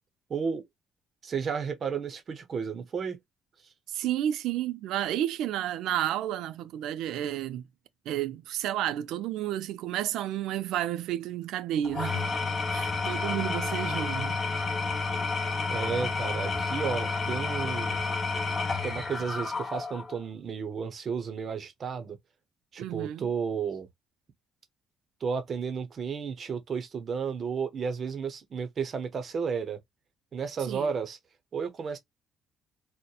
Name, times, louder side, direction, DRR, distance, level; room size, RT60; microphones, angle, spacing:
voice 1, 0.3-0.6 1.2-3.2 15.7-18.1 18.8-22.2 22.7-23.9 25.2-29.8 30.3-31.2 31.5-32.0, right 6 dB, 45° right, 0.6 m, -32 dB
voice 2, 3.9-7.6 8.1-12.3 12.7-14.4 22.8-23.3 30.6-30.9, right 12 dB, 85° right, 0.3 m, -31 dB
Engine / Tools, 11.8-20.2, left 4 dB, 35° left, 0.8 m, -30 dB
2.7 x 2.1 x 2.2 m
cardioid pair, 120°, 0 cm